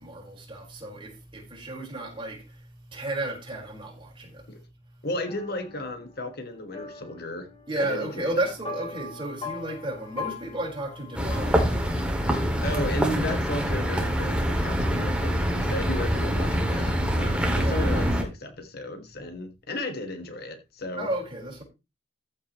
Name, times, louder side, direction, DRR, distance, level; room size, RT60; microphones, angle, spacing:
voice 1, 0.0-4.4 7.7-12.0 17.4-18.1 21.0-21.6, right 1 dB, 25° right, 4.4 m, -33 dB
voice 2, 5.0-7.5 7.8-8.4 12.6-21.1, left 1 dB, 50° left, 1.4 m, -34 dB
sound 1, 5.3-12.3, left 4 dB, 25° left, 2.6 m, -41 dB
sound 2, 11.1-18.2, equal, 5° right, 2.1 m, -25 dB
14.5 x 8.2 x 3.0 m
head